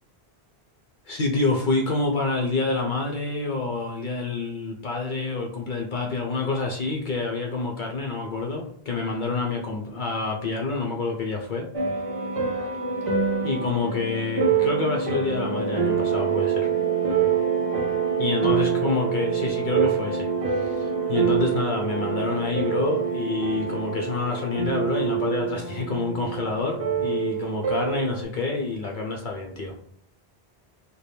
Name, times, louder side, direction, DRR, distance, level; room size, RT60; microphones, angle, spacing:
voice 1, 1.1-11.7 13.4-16.7 18.2-29.7, left 3 dB, 55° left, 1 dB, 0.7 m, -27 dB
sound 1, 11.7-28.2, right 6 dB, 35° right, 0.7 m, -26 dB
4.2 x 2.2 x 3.3 m, 0.65 s
omnidirectional pair, 1.1 m